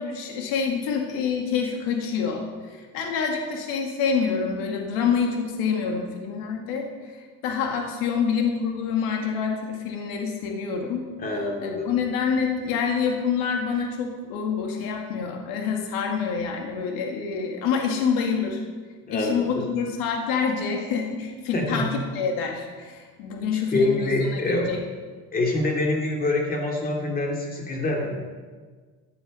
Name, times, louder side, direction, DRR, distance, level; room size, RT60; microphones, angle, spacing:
voice 1, 0.0-7.2 7.4-11.1 11.6-18.6 19.1-24.8, left 6 dB, 80° left, 2 dB, 2.0 m, -27 dB
voice 2, 11.2-11.9 19.1-19.6 21.5-21.8 23.5-24.7 25.3-28.2, left 2 dB, 25° left, 1 dB, 2.5 m, -25 dB
15.0 x 8.8 x 5.4 m, 1.5 s
cardioid pair, 150°, 34 cm